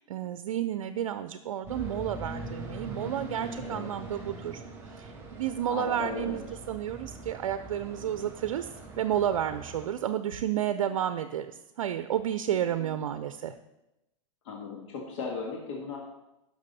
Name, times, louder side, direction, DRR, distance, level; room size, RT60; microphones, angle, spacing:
voice 1, 0.0-4.6 4.9-13.5, right 10 dB, 80° right, 11 dB, 0.5 m, -31 dB
sound 1, 1.7-9.9, right 2 dB, 15° right, 3.9 m, -42 dB
voice 2, 5.6-6.4 8.2-8.3 10.9-11.0 12.5-12.9 14.4-16.0, left 4 dB, 65° left, -1 dB, 1.9 m, -37 dB
11.5 x 6.0 x 4.1 m, 0.92 s
hypercardioid pair, 125°, 17 cm